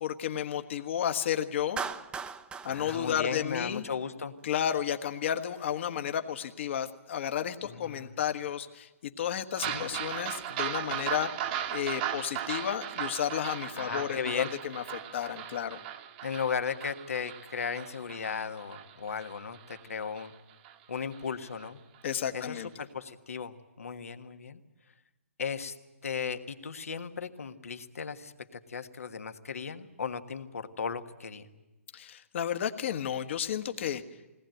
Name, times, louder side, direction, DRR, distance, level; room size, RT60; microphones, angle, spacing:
voice 1, 0.0-1.8 2.6-3.8 4.4-11.3 11.7-15.8 22.0-22.7 31.9-34.0, left 9 dB, 55° left, 8 dB, 1.5 m, -32 dB
Clapping, 1.8-4.1, right 6 dB, 10° right, 0.7 m, -39 dB
voice 2, 2.7-4.3 7.6-8.1 9.6-9.9 13.8-14.6 16.2-20.3 20.9-21.8 22.3-24.6 25.4-25.7 26.0-31.5, left 6 dB, 80° left, 8 dB, 1.5 m, -36 dB
sound 1, 9.6-20.3 20.6-20.7 21.1-21.2 21.6-21.7, right 10 dB, 40° right, 1.3 m, -37 dB
21.0 x 18.5 x 9.2 m, 1.1 s
hypercardioid pair, 135°, 8 cm